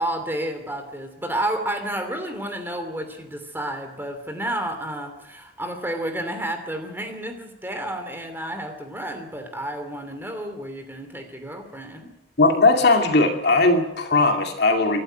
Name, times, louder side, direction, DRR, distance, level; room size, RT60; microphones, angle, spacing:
voice 1, 0.0-12.1, right 1 dB, 10° right, 6 dB, 2.8 m, -31 dB
voice 2, 12.4-15.0, left 3 dB, 60° left, 4 dB, 2.5 m, -18 dB
26.0 x 12.5 x 9.2 m, 0.93 s
head